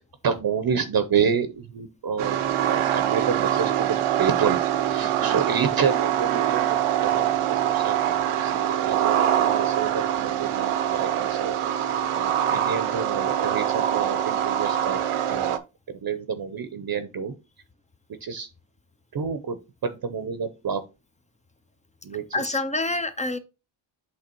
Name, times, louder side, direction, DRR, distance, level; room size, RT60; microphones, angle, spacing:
voice 1, 0.2-2.4 2.7-4.6 4.8-11.9 12.2-15.6 15.9-17.3 18.2-18.5 19.1-19.6 19.8-20.8 22.0-22.6, right 6 dB, 45° right, 0.8 m, -29 dB
sound 1, 2.2-15.6, right 10 dB, 80° right, 0.8 m, -24 dB
voice 2, 5.0-5.4 22.3-23.4, left 2 dB, 15° left, 0.5 m, -28 dB
8.1 x 3.4 x 4.4 m
wide cardioid pair, 165°, 50 cm